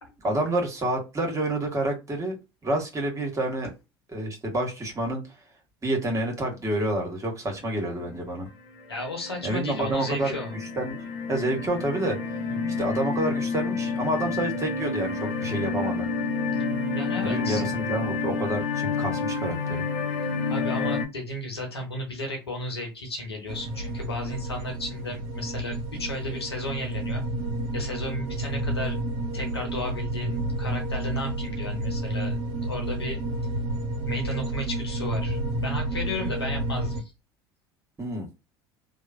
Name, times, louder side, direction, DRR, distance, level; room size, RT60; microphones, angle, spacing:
voice 1, 0.2-2.4 2.6-3.7 4.1-5.2 5.8-8.5 9.4-10.3 10.8-11.0 11.3-12.2 12.8-16.1 17.2-19.8 38.0-38.3, right 1 dB, 25° right, 1 dB, 1.4 m, -28 dB
sound 1, 7.9-8.3 8.8-21.0, left 4 dB, 55° left, 0.8 m, -29 dB
voice 2, 8.9-10.5 12.6-12.7 16.9-17.6 20.5-27.2 27.7-29.0 29.3-33.2 34.0-37.0, left 1 dB, 90° left, 2 dB, 1.0 m, -34 dB
sound 2, 23.5-37.0, right 1 dB, 60° right, 0.7 m, -30 dB
2.9 x 2.2 x 2.5 m, 0.26 s
figure-of-eight pair, 70°, 13 cm